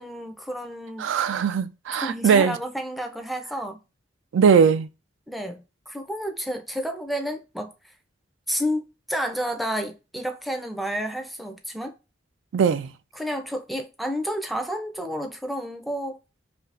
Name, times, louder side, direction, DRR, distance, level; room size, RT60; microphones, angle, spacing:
voice 1, 0.0-1.1 1.9-3.8 5.3-7.9 8.5-11.9 13.1-16.2, equal, ahead, 0.3 m, -30 dB
voice 2, 1.0-2.5 4.3-4.9 12.5-12.9, right 6 dB, 90° right, 0.3 m, -20 dB
2.7 x 2.5 x 3.2 m
head